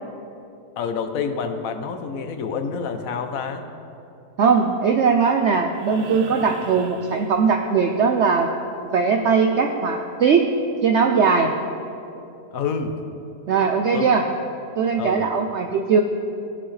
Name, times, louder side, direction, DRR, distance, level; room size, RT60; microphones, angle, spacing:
voice 1, 0.8-3.7 12.5-13.0 13.9-14.1 15.0-15.4, left 5 dB, 65° left, 7 dB, 1.0 m, -28 dB
voice 2, 4.4-8.5 8.8-10.5 10.8-11.5 13.5-14.2 14.8-16.0, right 5 dB, 85° right, 4 dB, 0.6 m, -19 dB
sound 1, 5.7-8.0 9.9-10.0, right 5 dB, 70° right, 1.1 m, -39 dB
17.5 x 6.0 x 3.3 m, 2.8 s
omnidirectional pair, 1.8 m